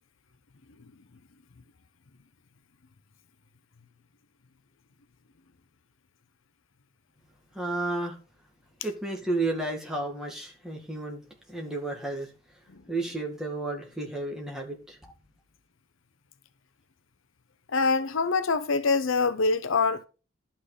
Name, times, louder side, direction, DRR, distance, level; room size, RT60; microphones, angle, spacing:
voice 1, 7.5-8.2 8.8-11.2 11.5-12.3 12.9-15.0, right 2 dB, ahead, 2.1 m, -32 dB
voice 2, 17.7-20.1, left 4 dB, 65° left, 0.7 m, -25 dB
11.5 x 5.9 x 5.0 m
head